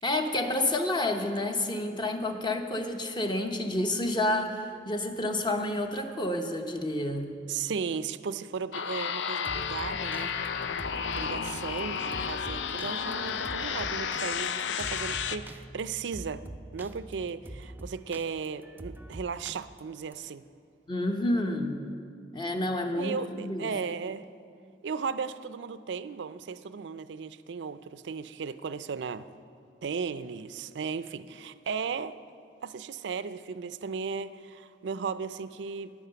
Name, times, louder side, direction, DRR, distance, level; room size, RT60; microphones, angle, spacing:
voice 1, 0.0-7.3 20.9-21.8 22.3-23.7, left 1 dB, 25° left, 5 dB, 0.9 m, -29 dB
voice 2, 7.5-10.3 11.2-16.4 16.7-20.4 22.9-24.3 24.8-29.3 29.8-32.1 32.6-35.9, right 5 dB, 75° right, 14 dB, 0.4 m, -36 dB
sound 1, 8.7-15.4, left 6 dB, 90° left, 0.5 m, -32 dB
sound 2, 9.4-20.1, right 1 dB, 10° right, 0.4 m, -44 dB
11.0 x 9.7 x 6.8 m, 2.3 s
head